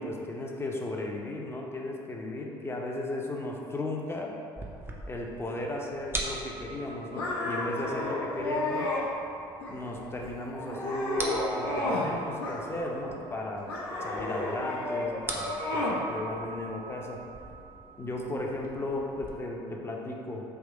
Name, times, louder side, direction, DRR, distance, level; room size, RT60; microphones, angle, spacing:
voice 1, 0.0-4.3 5.1-8.9 9.7-13.7 14.0-17.2 18.0-20.4, left 2 dB, 20° left, -1 dB, 0.6 m, -35 dB
sound 1, 4.6-19.3, right 3 dB, 20° right, 0.6 m, -42 dB
sound 2, 7.1-9.0 9.6-10.1 10.5-12.1 12.4-13.1 13.7-16.0, left 2 dB, 75° left, 0.9 m, -32 dB
3.6 x 2.9 x 4.0 m, 2.6 s
hypercardioid pair, 60°, 12 cm